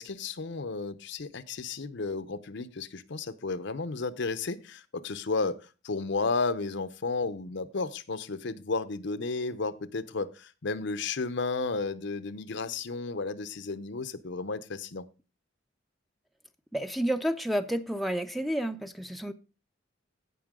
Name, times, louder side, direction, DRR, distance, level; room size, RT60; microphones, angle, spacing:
voice 1, 0.0-15.1, left 4 dB, 65° left, 0.7 m, -33 dB
voice 2, 16.7-19.3, equal, ahead, 0.6 m, -30 dB
16.5 x 5.7 x 3.7 m
head